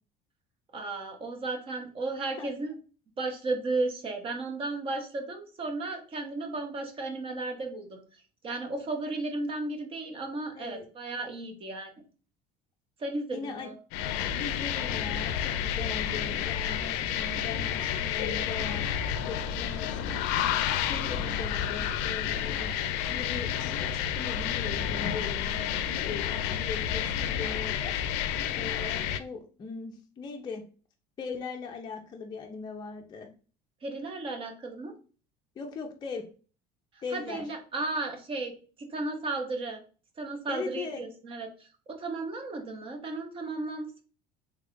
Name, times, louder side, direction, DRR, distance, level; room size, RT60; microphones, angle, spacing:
voice 1, 0.7-2.8 3.2-8.0 8.4-11.9 13.0-13.8 33.8-34.9 37.1-39.8 40.2-44.0, right 2 dB, 30° right, 4 dB, 0.7 m, -34 dB
voice 2, 10.5-10.9 13.3-13.7 14.1-18.8 19.2-20.2 20.8-25.6 26.0-27.9 28.6-30.6 31.2-33.3 35.6-36.2 37.0-37.4 40.5-41.0, left 4 dB, 25° left, 2 dB, 0.5 m, -39 dB
sound 1, 13.9-29.2, left 9 dB, 85° left, 0.4 m, -30 dB
3.4 x 2.4 x 3.6 m, 0.38 s
cardioid pair, 140°, 18 cm